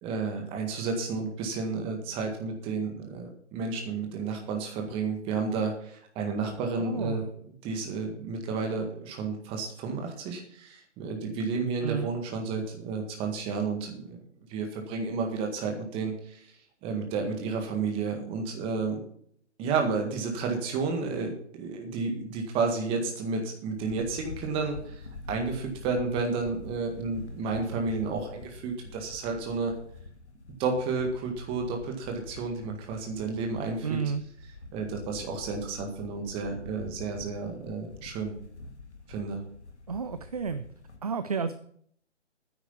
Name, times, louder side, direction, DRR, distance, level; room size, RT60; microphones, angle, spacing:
voice 1, 0.0-7.2 7.6-14.2 14.5-16.5 16.8-19.0 19.6-29.7 30.6-34.0 34.7-38.3 39.1-39.4, right 4 dB, 15° right, 2 dB, 1.8 m, -31 dB
voice 2, 6.8-7.2 11.8-12.1 33.8-34.2 39.9-40.6 41.0-41.5, right 6 dB, 35° right, 12 dB, 0.4 m, -31 dB
sound 1, 23.8-41.0, left 3 dB, 70° left, 2.1 m, -46 dB
9.9 x 8.1 x 7.0 m, 0.64 s
figure-of-eight pair, 140°, 35 cm